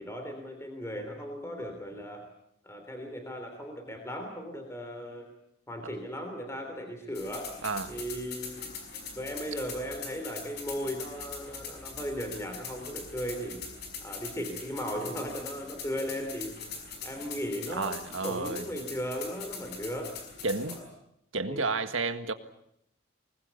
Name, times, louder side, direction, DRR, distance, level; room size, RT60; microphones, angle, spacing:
voice 1, 0.0-2.2 2.6-5.3 5.7-7.5 7.9-8.7 9.1-13.6 14.0-16.5 17.0-20.2 20.7-20.8 21.4-21.7, equal, 15° left, 4 dB, 3.3 m, -37 dB
sound 1, 7.2-20.8, left 5 dB, 55° left, 5.5 m, -42 dB
voice 2, 7.6-7.9 17.7-18.7 20.4-20.8 21.3-22.3, right 3 dB, 80° right, 9 dB, 1.8 m, -31 dB
25.0 x 20.0 x 8.3 m, 0.77 s
head